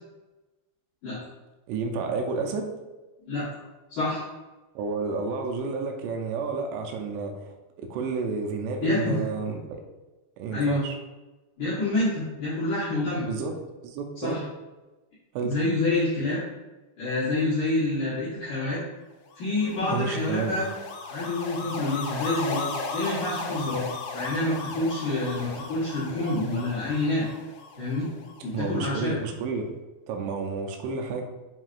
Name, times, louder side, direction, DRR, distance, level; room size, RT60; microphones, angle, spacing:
voice 1, 1.7-2.7 4.8-9.8 10.4-11.0 13.3-13.6 13.8-14.4 15.3-15.6 19.7-20.5 28.5-29.7 30.1-31.2, right 4 dB, 85° right, 3 dB, 2.6 m, -31 dB
voice 2, 3.9-4.2 8.8-9.2 10.5-10.8 11.6-13.3 14.2-14.4 15.4-16.4 17.0-18.8 19.4-20.7 21.1-23.9 24.1-27.2 27.8-28.1 28.4-29.2, left 2 dB, 65° left, -11 dB, 2.0 m, -27 dB
sound 1, 19.4-28.7, left 4 dB, 80° left, 2.8 m, -36 dB
7.3 x 2.7 x 2.4 m, 1.1 s
omnidirectional pair, 5.3 m